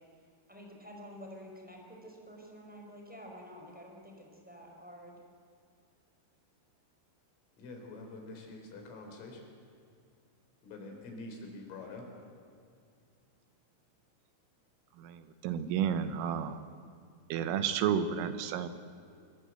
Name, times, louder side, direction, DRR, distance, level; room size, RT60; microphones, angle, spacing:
voice 1, 0.5-5.2, equal, ahead, 0 dB, 4.0 m, -49 dB
voice 2, 7.6-9.4 10.6-12.1, left 2 dB, 80° left, 2 dB, 6.6 m, -46 dB
voice 3, 15.0-16.6 17.3-18.7, right 8 dB, 85° right, 10 dB, 3.8 m, -31 dB
26.0 x 21.5 x 7.9 m, 2.4 s
omnidirectional pair, 5.7 m